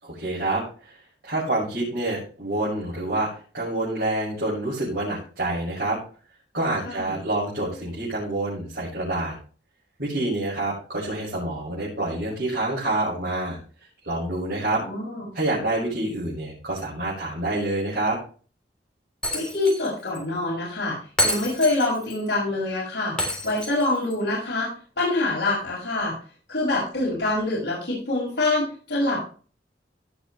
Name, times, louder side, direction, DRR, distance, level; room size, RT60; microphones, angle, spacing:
voice 1, 0.0-0.9 1.2-3.3 3.5-6.0 6.5-9.3 10.0-13.6 14.0-14.8 15.3-18.2, right 2 dB, 65° right, -8 dB, 6.2 m, -27 dB
voice 2, 14.8-15.3 19.3-23.2 23.4-24.7 25.0-26.1 26.5-29.2, left 2 dB, 65° left, -6 dB, 6.0 m, -25 dB
Shatter, 19.2-19.9 20.1-20.2 21.2-22.2 23.2-24.2, left 1 dB, 5° left, 3.4 m, -28 dB
17.0 x 6.8 x 3.2 m, 0.39 s
head